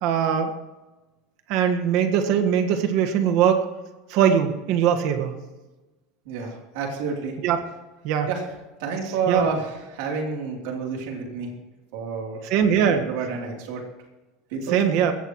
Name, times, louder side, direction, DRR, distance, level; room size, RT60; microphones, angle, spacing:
voice 1, 0.0-0.5 1.5-3.7 4.1-5.3 7.4-7.6 8.0-8.3 9.3-9.5 12.4-13.1 14.7-15.1, right 8 dB, 50° right, 5 dB, 1.6 m, -21 dB
voice 2, 6.3-7.3 8.3-8.4 8.8-11.5 11.9-12.4 12.9-13.8 14.5-14.8, right 5 dB, 65° right, 0 dB, 3.3 m, -29 dB
21.5 x 16.5 x 3.2 m, 1.1 s
cardioid pair, 175°, 0 cm